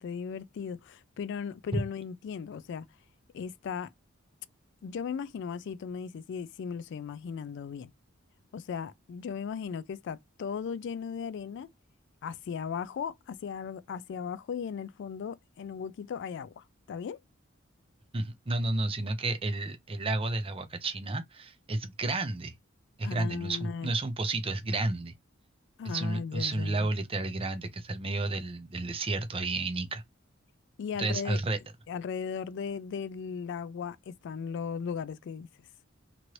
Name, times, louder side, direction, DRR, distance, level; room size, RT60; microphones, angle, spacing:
voice 1, 0.0-2.9 3.3-3.9 4.8-7.9 8.5-11.7 12.2-17.2 23.0-23.9 25.8-26.9 30.8-31.4 31.9-35.5, left 6 dB, 60° left, 0.3 m, -37 dB
voice 2, 18.1-22.5 23.0-25.1 25.8-30.0 31.0-31.6, right 2 dB, 30° right, 0.6 m, -31 dB
2.9 x 2.6 x 3.0 m
head